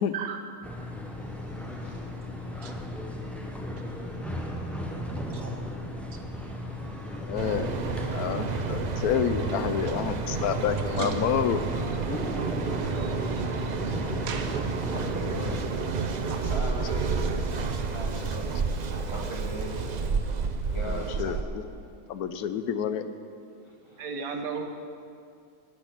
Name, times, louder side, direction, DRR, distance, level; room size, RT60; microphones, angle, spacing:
sound 1, 0.6-15.6, left 1 dB, ahead, 0.5 m, -36 dB
voice 1, 0.9-5.7 6.3-7.5 14.9-15.6 16.4-18.5 19.1-19.7 20.6-21.4 23.6-24.1, equal, 20° left, -1 dB, 1.5 m, -43 dB
voice 2, 4.7-6.2 7.6-7.8 9.1-9.2 9.9-10.0 10.8-11.2 12.9-13.1 13.6-13.9 14.3-14.5 16.1-16.5 24.0-24.7, right 6 dB, 65° right, 5 dB, 1.4 m, -38 dB
voice 3, 7.2-7.7 8.1-11.6 20.9-21.6 22.1-23.0, left 8 dB, 75° left, 11 dB, 1.1 m, -29 dB
Mechanical fan, 7.4-21.4, right 4 dB, 85° right, 0.3 m, -31 dB
sound 2, 11.9-17.6, right 5 dB, 45° right, 0.6 m, -35 dB
12.0 x 6.3 x 8.6 m, 2.4 s
omnidirectional pair, 1.6 m